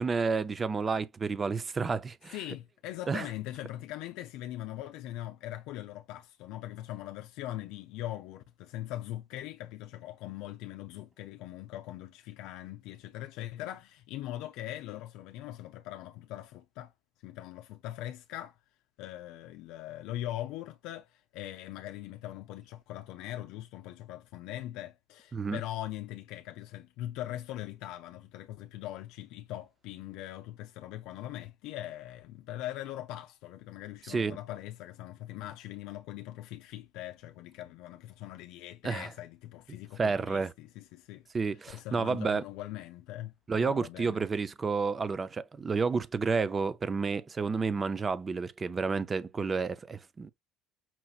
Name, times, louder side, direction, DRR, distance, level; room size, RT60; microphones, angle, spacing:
voice 1, 0.0-2.3 3.1-3.3 25.3-25.6 34.1-34.4 38.8-39.1 40.0-40.5 41.3-42.4 43.5-50.3, right 4 dB, 25° right, 0.5 m, -30 dB
voice 2, 2.3-16.9 17.2-18.6 19.0-41.3 41.7-44.2, left 14 dB, 75° left, 0.5 m, -41 dB
5.8 x 2.9 x 2.4 m
supercardioid pair, 100°, 0 cm